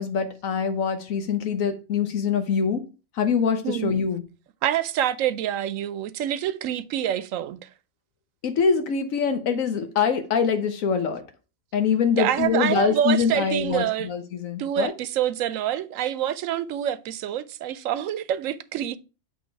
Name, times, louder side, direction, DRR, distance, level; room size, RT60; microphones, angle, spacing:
voice 1, 0.0-2.9 3.2-4.2 8.4-11.2 11.7-14.9, left 6 dB, 75° left, 1.1 m, -24 dB
voice 2, 3.6-4.0 4.6-7.7 12.2-14.1 14.6-19.0, right 11 dB, 75° right, 0.9 m, -26 dB
8.3 x 3.0 x 4.5 m
omnidirectional pair, 1.4 m